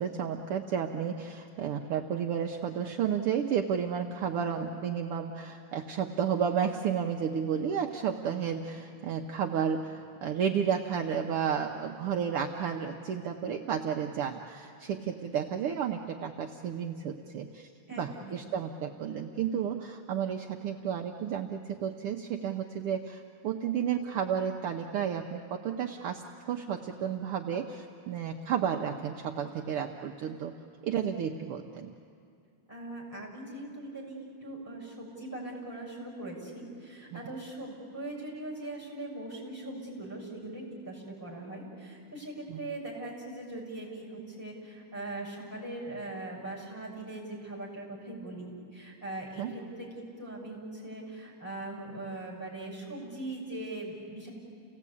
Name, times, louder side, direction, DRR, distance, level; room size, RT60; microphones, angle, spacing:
voice 1, 0.0-26.2 26.5-30.5 30.8-31.9 37.1-37.2 42.5-42.6 49.4-49.5, right 8 dB, 70° right, 2 dB, 1.4 m, -32 dB
voice 2, 17.9-18.4 32.7-54.3, right 2 dB, 5° left, -3 dB, 6.5 m, -41 dB
30.0 x 17.5 x 8.5 m, 2.4 s
omnidirectional pair, 3.5 m